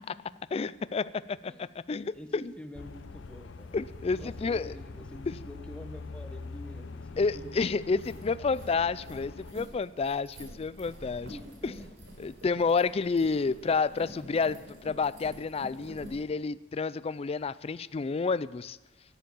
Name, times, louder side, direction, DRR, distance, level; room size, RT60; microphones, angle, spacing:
voice 1, 0.0-0.6 1.4-1.6 2.1-3.8 4.1-7.5 7.7-8.9 11.0-12.3, equal, 5° left, 5 dB, 1.1 m, -48 dB
voice 2, 0.5-1.5 1.9-2.4 3.7-4.7 5.3-5.4 7.2-11.3 11.6-11.7 12.2-18.8, left 4 dB, 30° left, 17 dB, 0.3 m, -30 dB
sound 1, 2.7-9.5, left 3 dB, 75° left, 0.6 m, -43 dB
sound 2, 7.4-7.5 7.8-16.2, equal, 80° right, 4.1 m, -48 dB
13.5 x 10.5 x 7.0 m, 1.1 s
head